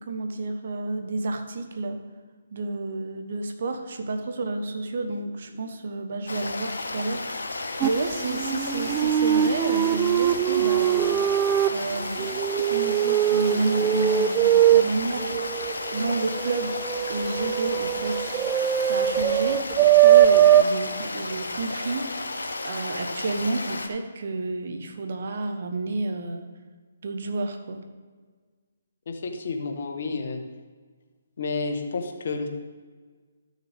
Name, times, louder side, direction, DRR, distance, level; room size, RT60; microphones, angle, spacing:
voice 1, 0.0-2.0 2.5-7.2 7.8-11.4 11.7-15.3 15.9-16.8 17.1-18.3 18.8-22.2 22.6-26.4 27.0-27.8, right 3 dB, 60° right, 6 dB, 1.1 m, -30 dB
Stream, 6.3-23.9, left 2 dB, 80° left, 1.2 m, -33 dB
sound 1, 7.8-7.9 8.2-11.7 12.0-14.8 15.2-20.6, right 11 dB, 20° right, 0.4 m, -21 dB
voice 2, 29.1-30.4 31.4-32.5, left 4 dB, 60° left, 4 dB, 1.2 m, -30 dB
13.5 x 6.6 x 3.5 m, 1.5 s
figure-of-eight pair, 145°, 0 cm